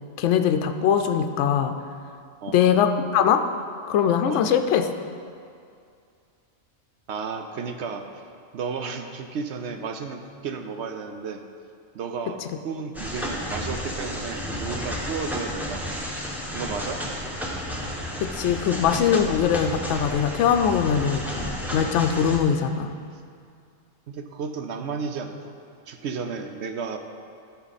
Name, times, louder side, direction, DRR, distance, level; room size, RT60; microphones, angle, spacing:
voice 1, 0.2-1.8 2.5-3.5 3.9-4.9 18.2-22.9, left 8 dB, 70° left, 7 dB, 0.8 m, -22 dB
voice 2, 7.1-8.1 8.5-11.4 11.9-15.8 16.5-17.0 24.1-25.5 25.9-27.0, right 5 dB, 65° right, 6 dB, 0.9 m, -33 dB
sound 1, 12.9-22.4, equal, ahead, 0.9 m, -32 dB
13.0 x 6.3 x 4.0 m, 2.4 s
omnidirectional pair, 1.3 m